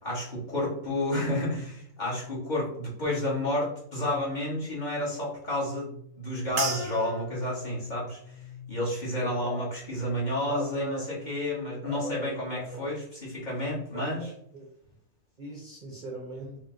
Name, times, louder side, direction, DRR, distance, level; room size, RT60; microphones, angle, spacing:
voice 1, 0.0-8.2 8.7-14.2, left 1 dB, 35° left, -7 dB, 1.3 m, -31 dB
sound 1, 6.6-11.1 11.4-12.1 12.7-12.9, right 1 dB, 75° right, 1.2 m, -38 dB
voice 2, 9.1-9.6 10.5-11.2 11.8-13.0 13.9-14.3 14.5-14.6 15.4-16.6, right 2 dB, 45° right, -2 dB, 0.8 m, -39 dB
4.3 x 2.1 x 3.7 m, 0.72 s
omnidirectional pair, 1.4 m